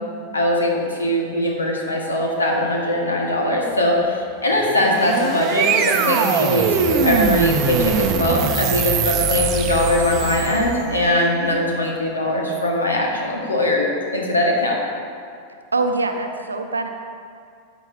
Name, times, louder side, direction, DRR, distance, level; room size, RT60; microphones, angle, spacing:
voice 1, 0.3-13.9 14.1-14.8, left 1 dB, 75° left, -1 dB, 1.7 m, -21 dB
sound 1, 4.6-10.9, right 6 dB, 35° right, 0.7 m, -22 dB
voice 2, 15.7-16.9, right 3 dB, 75° right, 5 dB, 0.8 m, -23 dB
13.5 x 8.9 x 2.9 m, 2.3 s
figure-of-eight pair, 90°, 0 cm